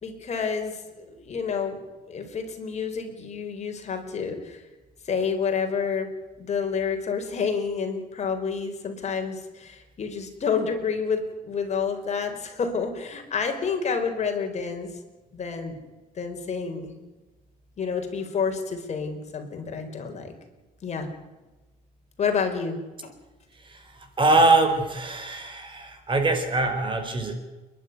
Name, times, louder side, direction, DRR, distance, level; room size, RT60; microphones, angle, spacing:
voice 1, 0.0-1.8 2.1-4.6 5.0-6.1 6.4-14.9 15.3-15.8 16.1-16.9 17.8-20.3 20.8-21.1 22.2-23.2, left 5 dB, 40° left, 5 dB, 4.7 m, -29 dB
voice 2, 24.2-27.3, right 2 dB, 30° right, 7 dB, 4.3 m, -22 dB
29.0 x 11.5 x 9.6 m, 1.1 s
cardioid pair, 110°, 17 cm